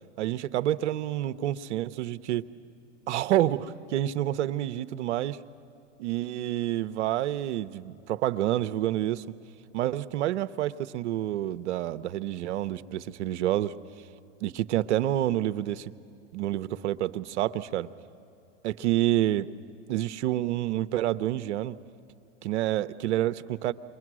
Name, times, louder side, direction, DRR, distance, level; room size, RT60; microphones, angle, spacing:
voice 1, 0.2-2.5 3.1-5.4 6.0-9.3 9.7-13.7 14.4-15.9 16.3-17.9 18.6-19.5 19.9-21.8 22.4-23.7, right 13 dB, 70° right, 13 dB, 0.8 m, -28 dB
28.5 x 22.5 x 6.2 m, 2.7 s
hypercardioid pair, 105°, 36 cm